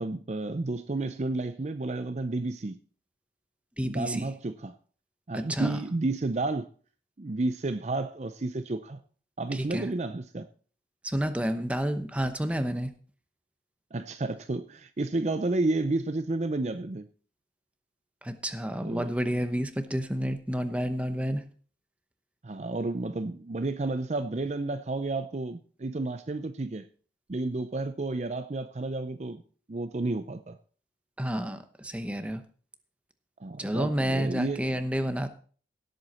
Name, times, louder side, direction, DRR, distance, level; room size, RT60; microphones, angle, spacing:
voice 1, 0.0-2.8 3.8-4.7 5.3-6.7 7.2-9.0 9.4-10.5 13.9-17.1 18.8-19.1 22.4-26.9 27.3-29.4 29.7-30.6 33.4-34.8, right 2 dB, 40° right, 0.5 m, -31 dB
voice 2, 3.8-4.3 5.3-5.8 9.5-9.9 11.0-12.9 18.2-21.4 31.2-32.4 33.6-35.3, equal, 5° right, 0.9 m, -30 dB
17.0 x 7.9 x 4.3 m
head